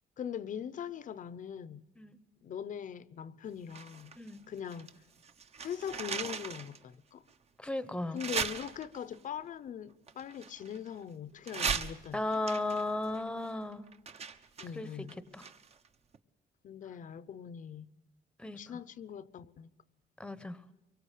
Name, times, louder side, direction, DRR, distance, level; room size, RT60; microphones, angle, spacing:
voice 1, 0.2-1.8 2.4-4.1 4.5-4.9 5.6-7.2 8.1-12.2 14.6-15.2 16.6-17.9 18.6-19.7, left 8 dB, 50° left, 0.8 m, -41 dB
sound 1, 3.7-5.0 5.2-6.8 7.3-7.4 8.2-9.2 10.1-11.0 11.4-15.9 16.1-16.2, right 6 dB, 40° right, 1.2 m, -38 dB
voice 2, 7.6-8.2 12.1-13.8 14.7-14.9 15.3-15.5 18.4-18.8 20.2-20.6, left 2 dB, 5° left, 1.0 m, -35 dB
24.5 x 23.0 x 8.4 m
cardioid pair, 170°, 17 cm